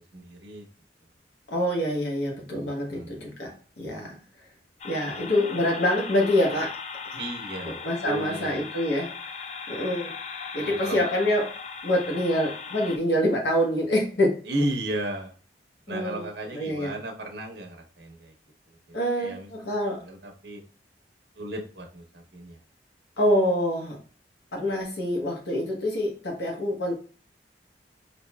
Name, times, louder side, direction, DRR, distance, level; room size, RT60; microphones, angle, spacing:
voice 1, 0.1-0.6 2.5-3.2 7.2-8.5 10.6-11.1 14.5-15.3 15.9-18.3 18.7-19.5 20.0-20.6 21.4-22.6, right 1 dB, 65° right, 3 dB, 0.8 m, -34 dB
voice 2, 1.5-4.2 4.8-6.8 7.1-7.2 7.6-9.1 9.7-10.1 10.5-11.5 11.8-14.3 15.9-16.3 16.5-16.9 18.9-20.0 23.2-24.0 24.5-26.9, left 1 dB, 85° left, -1 dB, 1.1 m, -26 dB
sound 1, 4.8-13.0, left 5 dB, 40° left, 0.4 m, -38 dB
4.4 x 2.7 x 2.2 m, 0.38 s
head